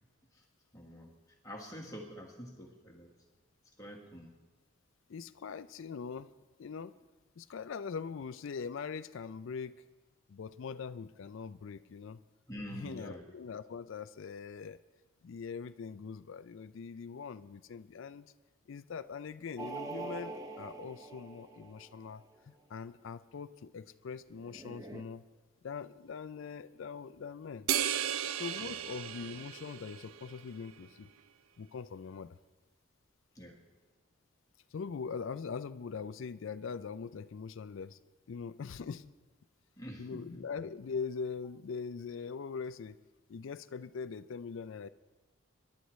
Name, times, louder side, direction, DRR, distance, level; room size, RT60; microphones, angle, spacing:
voice 1, 0.7-1.1 1.4-3.1 3.8-4.3 12.5-13.2 28.6-28.7 33.3-33.6 39.8-40.4, equal, 15° left, -1 dB, 1.5 m, -46 dB
voice 2, 5.1-6.3 6.6-7.0 7.4-9.7 10.3-12.2 12.7-14.8 15.2-18.3 18.7-25.2 25.6-27.7 28.4-31.1 31.6-32.4 34.7-38.0 38.3-39.1 40.0-43.0 43.3-44.9, left 5 dB, 70° left, 12 dB, 0.4 m, -42 dB
sound 1, 19.6-22.2 24.3-25.0, right 3 dB, 15° right, 0.6 m, -44 dB
sound 2, 27.7-30.4, right 10 dB, 85° right, 0.4 m, -35 dB
26.5 x 11.5 x 3.1 m, 1.3 s
head